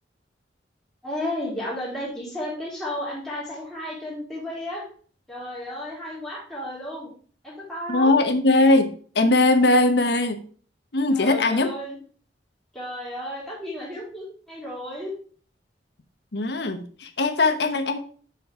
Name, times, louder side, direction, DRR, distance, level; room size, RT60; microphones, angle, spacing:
voice 1, 1.0-4.9 5.3-7.1 7.4-8.1 11.1-12.0 12.7-15.2, left 1 dB, ahead, -6 dB, 3.1 m, -33 dB
voice 2, 7.9-10.4 10.9-11.7 16.3-18.0, left 2 dB, 65° left, 8 dB, 1.0 m, -20 dB
6.2 x 5.8 x 4.7 m, 0.44 s
head